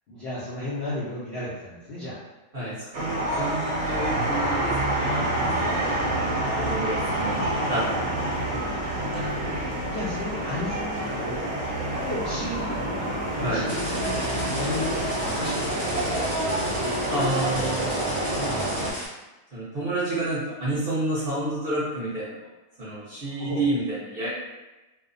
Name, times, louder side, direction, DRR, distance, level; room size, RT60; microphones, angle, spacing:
voice 1, 0.1-2.2 8.4-8.8 9.1-9.5 9.9-11.5 11.9-14.2 14.5-16.2 23.4-23.6, left 1 dB, 80° left, -8 dB, 0.5 m, -34 dB
voice 2, 2.5-7.4 7.7-7.8 8.6-8.9 13.4-13.7 17.1-17.9 18.4-18.7 19.5-22.3 22.8-24.3, right 1 dB, 50° right, -10 dB, 0.6 m, -30 dB
sound 1, 2.9-18.9, right 1 dB, 70° right, 1.0 m, -27 dB
sound 2, 13.7-19.1, equal, 25° right, 0.9 m, -35 dB
2.7 x 2.0 x 2.5 m, 1.1 s
omnidirectional pair, 1.8 m